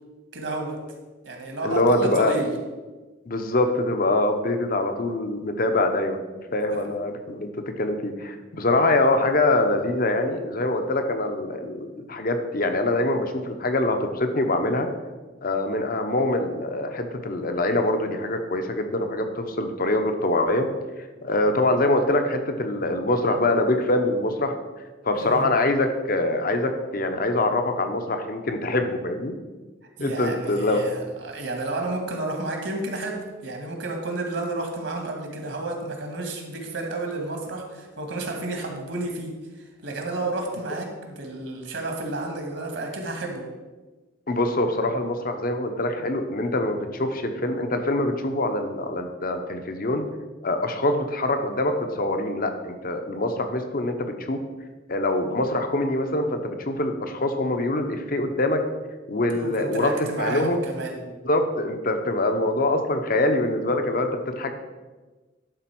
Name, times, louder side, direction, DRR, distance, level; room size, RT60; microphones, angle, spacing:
voice 1, 0.3-0.8 1.2-2.5 6.7-6.9 25.1-25.5 30.0-43.4 59.3-61.0, right 2 dB, 70° right, 2 dB, 2.0 m, -31 dB
voice 2, 1.6-2.3 3.3-6.2 6.5-7.5 7.8-14.9 15.4-20.7 21.2-24.5 25.0-29.4 30.0-30.8 44.3-50.0 50.4-54.4 54.9-58.6 59.1-60.6 61.2-64.5, left 2 dB, 45° left, 6 dB, 0.9 m, -24 dB
11.5 x 4.1 x 6.1 m, 1.3 s
head